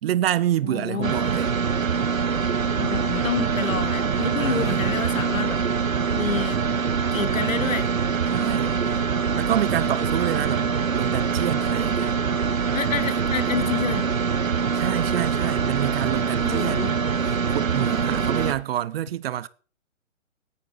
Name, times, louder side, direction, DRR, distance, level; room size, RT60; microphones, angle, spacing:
voice 1, 0.0-1.5 4.4-4.9 8.3-9.1 9.4-10.7 10.9-12.2 14.7-17.0 17.3-19.5, right 12 dB, 45° right, 0.8 m, -27 dB
voice 2, 0.6-1.1 2.8-5.6 6.1-6.6 7.1-7.9 12.7-14.1 16.4-16.9, left 6 dB, 85° left, 1.7 m, -28 dB
sound 1, 1.0-18.5, right 6 dB, 80° right, 1.6 m, -24 dB
17.0 x 10.0 x 4.1 m
hypercardioid pair, 135°, 39 cm